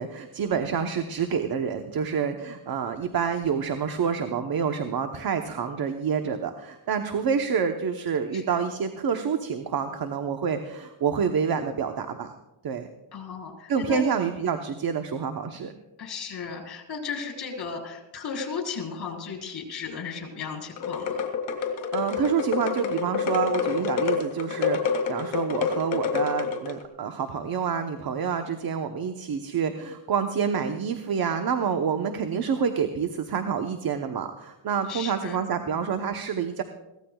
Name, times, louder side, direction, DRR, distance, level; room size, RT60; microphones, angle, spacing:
voice 1, 0.0-12.3 12.6-12.9 13.7-15.7 21.9-36.6, right 6 dB, 50° right, 6 dB, 1.0 m, -28 dB
voice 2, 13.1-14.0 16.0-21.3 34.9-35.4, left 5 dB, 55° left, 1 dB, 4.6 m, -35 dB
sound 1, 20.8-26.8, left 6 dB, 75° left, 2.3 m, -27 dB
22.0 x 16.5 x 2.4 m, 0.97 s
cardioid pair, 110°, 46 cm